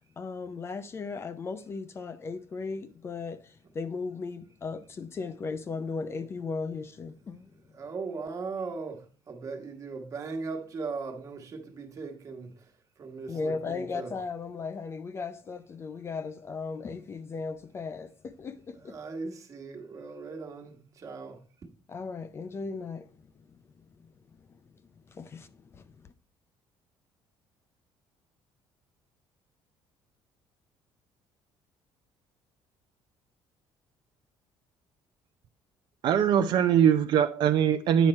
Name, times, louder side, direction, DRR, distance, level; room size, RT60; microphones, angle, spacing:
voice 1, 0.2-7.5 13.3-19.0 21.9-23.8 24.4-24.6 25.1-26.1, left 4 dB, 30° left, 0.5 m, -37 dB
voice 2, 7.8-12.5 13.0-14.1 18.9-21.4, right 4 dB, 35° right, 1.4 m, -38 dB
voice 3, 36.0-38.1, right 9 dB, 55° right, 0.5 m, -22 dB
9.1 x 5.9 x 4.3 m
cardioid pair, 145°, 9 cm